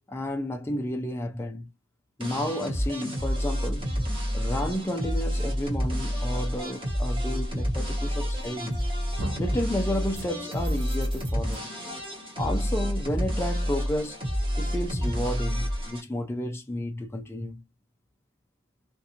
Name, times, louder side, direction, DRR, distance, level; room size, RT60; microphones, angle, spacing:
voice 1, 0.1-1.7 2.2-3.9 4.3-8.8 9.4-11.7 12.4-14.2 14.6-17.6, left 1 dB, 10° left, 0.3 m, -31 dB
sound 1, 2.2-16.0, equal, 25° right, 1.0 m, -29 dB
sound 2, 8.4-8.8 9.2-9.6 10.1-11.6, right 1 dB, 50° right, 0.7 m, -37 dB
2.5 x 2.4 x 2.7 m
head